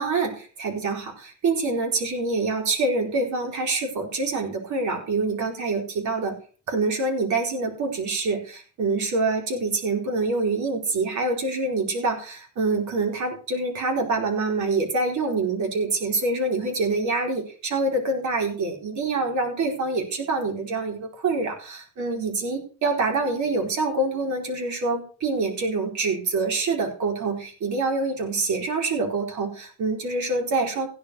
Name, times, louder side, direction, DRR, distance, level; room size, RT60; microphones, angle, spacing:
voice 1, 0.0-6.3 6.7-30.9, right 3 dB, 70° right, 1 dB, 4.8 m, -26 dB
16.0 x 5.3 x 6.5 m, 0.39 s
cardioid pair, 90°, 30 cm